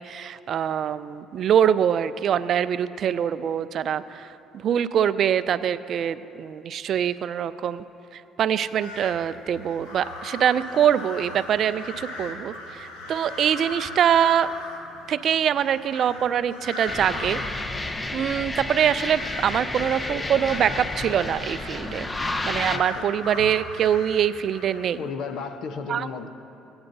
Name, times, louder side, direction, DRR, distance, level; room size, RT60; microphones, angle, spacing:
voice 1, 0.0-4.4 4.6-7.8 8.1-14.5 15.1-17.4 18.1-22.1 22.4-25.0 25.9-26.1, right 9 dB, 60° right, 14 dB, 0.3 m, -24 dB
sound 1, 8.8-25.1, left 2 dB, 90° left, 1.2 m, -39 dB
sound 2, 16.9-22.8, left 2 dB, 20° left, 0.6 m, -31 dB
voice 2, 22.7-23.1 25.0-26.3, left 5 dB, 70° left, 8 dB, 0.6 m, -34 dB
17.5 x 8.8 x 2.6 m, 3.0 s
supercardioid pair, 70°, 0 cm